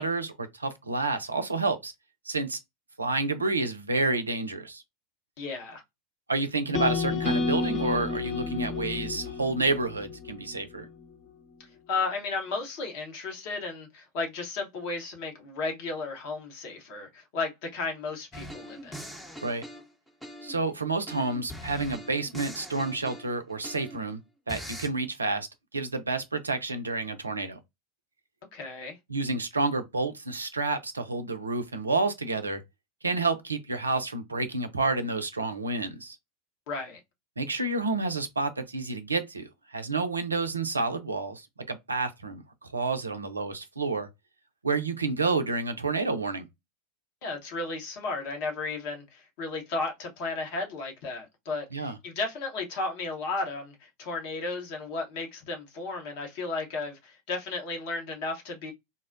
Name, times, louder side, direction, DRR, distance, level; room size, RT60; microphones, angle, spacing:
voice 1, 0.0-1.9 2.3-2.6 3.0-4.8 6.3-10.9 19.4-19.6 20.4-24.2 24.5-25.5 25.7-27.6 29.1-32.6 33.0-36.2 37.4-42.4 42.7-44.1 44.6-46.4 51.7-52.0, right 3 dB, 85° right, 0.5 m, -29 dB
voice 2, 5.4-5.8 11.9-19.0 28.5-29.0 36.7-37.0 47.2-58.7, left 3 dB, 55° left, 1.0 m, -34 dB
sound 1, 6.7-10.9, left 4 dB, 35° left, 0.8 m, -31 dB
sound 2, 18.3-20.7 21.1-24.1 24.5-24.9, equal, 5° left, 0.8 m, -42 dB
3.8 x 2.1 x 2.5 m
figure-of-eight pair, 90°, 0 cm